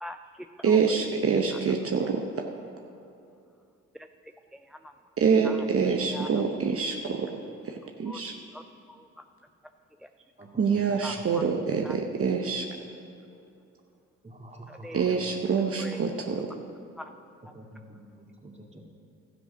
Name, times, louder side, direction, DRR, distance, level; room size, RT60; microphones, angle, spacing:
voice 1, 0.0-1.1 1.5-1.6 3.9-4.9 5.4-5.7 5.9-6.3 8.1-8.2 8.5-9.3 10.0-10.1 11.0-11.5 11.8-12.0 14.7-15.1 15.8-16.0 17.0-17.1 17.4-17.5, left 1 dB, ahead, 6 dB, 0.3 m, -43 dB
voice 2, 0.6-2.5 5.2-7.3 7.6-8.3 10.6-12.7 14.9-16.5, right 5 dB, 45° right, 3 dB, 0.9 m, -26 dB
voice 3, 10.4-11.6 14.2-15.3 17.5-18.8, right 1 dB, 20° right, 0 dB, 2.1 m, -47 dB
13.0 x 7.6 x 5.3 m, 2.5 s
supercardioid pair, 55°, 31 cm